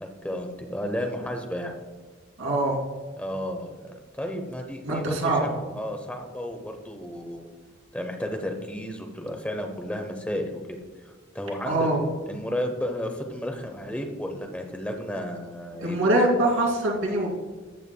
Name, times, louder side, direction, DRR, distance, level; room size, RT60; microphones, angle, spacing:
voice 1, 0.0-1.7 3.2-7.5 7.9-10.6 11.0-16.1, equal, 5° left, 3 dB, 0.8 m, -33 dB
voice 2, 2.4-2.8 4.8-5.5 11.7-12.0 15.8-17.3, right 1 dB, 85° right, -2 dB, 2.5 m, -23 dB
14.0 x 8.1 x 2.2 m, 1.4 s
head